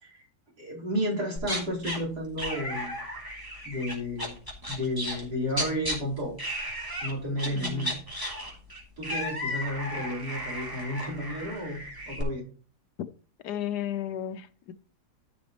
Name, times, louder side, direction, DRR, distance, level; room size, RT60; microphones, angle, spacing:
voice 1, 0.6-3.0 3.6-4.3 4.7-6.5 7.0-7.9 9.0-12.4, equal, 90° right, 5.1 m, -32 dB
sound 1, 1.4-2.0 2.4-6.0 6.4-7.1 7.4-12.2, equal, 10° right, 3.1 m, -34 dB
voice 2, 7.5-8.0 13.4-14.7, left 10 dB, 80° left, 1.4 m, -34 dB
14.0 x 6.2 x 3.1 m
omnidirectional pair, 1.7 m